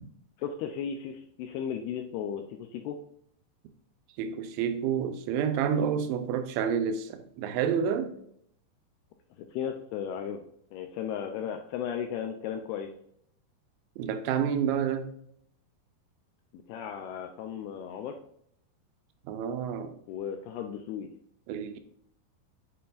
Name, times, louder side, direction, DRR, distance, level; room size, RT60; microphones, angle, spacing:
voice 1, 0.4-3.0 9.4-10.4 10.7-12.9 16.5-18.2 20.1-21.1, left 8 dB, 85° left, 2.3 m, -35 dB
voice 2, 4.2-8.1 14.0-15.1 19.3-20.0 21.5-21.8, right 7 dB, 85° right, 3.0 m, -29 dB
7.5 x 6.8 x 2.5 m
omnidirectional pair, 5.2 m